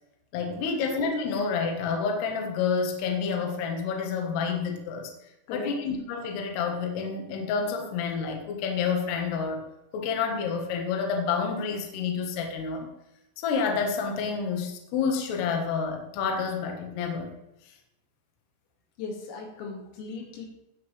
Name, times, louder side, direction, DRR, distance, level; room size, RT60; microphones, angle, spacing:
voice 1, 0.3-5.1 5.5-9.6 9.9-12.9 13.4-17.3, left 5 dB, 65° left, 3 dB, 3.0 m, -29 dB
voice 2, 19.0-20.5, left 4 dB, 90° left, 0 dB, 4.9 m, -38 dB
19.0 x 7.2 x 3.3 m, 0.90 s
omnidirectional pair, 5.9 m